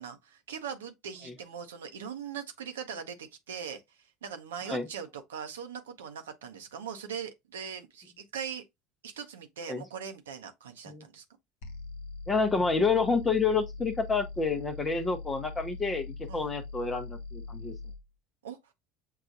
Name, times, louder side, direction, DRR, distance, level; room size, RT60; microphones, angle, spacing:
voice 1, 0.0-8.6 9.0-11.2 16.3-16.5 18.4-18.7, right 7 dB, 85° right, 0.6 m, -41 dB
sound 1, 11.6-18.0, left 3 dB, 70° left, 0.6 m, -41 dB
voice 2, 12.3-17.7, left 4 dB, 20° left, 0.6 m, -28 dB
6.5 x 2.3 x 2.6 m
hypercardioid pair, 80°, 0 cm